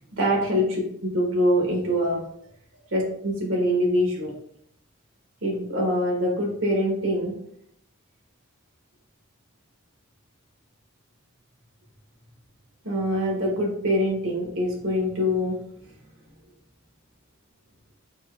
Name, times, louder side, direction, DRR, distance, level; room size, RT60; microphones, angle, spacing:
voice 1, 0.1-2.2 2.9-4.3 5.4-7.3 12.8-15.6, equal, 65° right, -1 dB, 1.5 m, -24 dB
4.6 x 4.5 x 2.3 m, 0.67 s
head